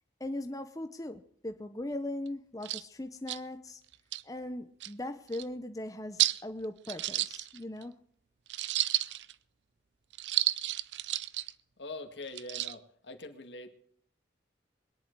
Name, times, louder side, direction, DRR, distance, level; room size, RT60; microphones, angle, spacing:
voice 1, 0.2-3.8 4.2-7.9, left 1 dB, 20° left, 0.8 m, -39 dB
sound 1, 2.3-2.4 2.6-2.8 3.3-3.4 3.9-4.2 4.8-4.9 5.3-5.4 6.2-6.4 6.8-7.8 8.5-9.3 10.1-11.5 12.3-12.7, right 15 dB, 80° right, 0.6 m, -31 dB
voice 2, 11.8-13.7, left 2 dB, 80° left, 2.0 m, -43 dB
22.0 x 10.5 x 4.7 m
head